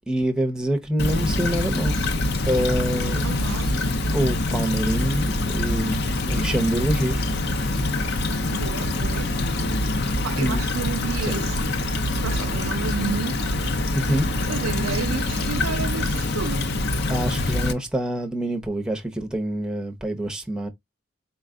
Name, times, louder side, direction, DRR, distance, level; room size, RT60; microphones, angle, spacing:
voice 1, 0.1-1.9 2.4-3.3 4.1-7.2 10.4-10.6 11.3-11.4 13.9-14.3 17.1-20.7, right 1 dB, 5° right, 0.7 m, -26 dB
Stream / Trickle dribble, 1.0-17.7, left 2 dB, 50° left, 0.6 m, -25 dB
voice 2, 3.2-3.8 8.5-9.4 10.2-11.7 12.2-13.6 14.5-16.7, right 6 dB, 85° right, 0.4 m, -31 dB
4.2 x 2.2 x 3.6 m
head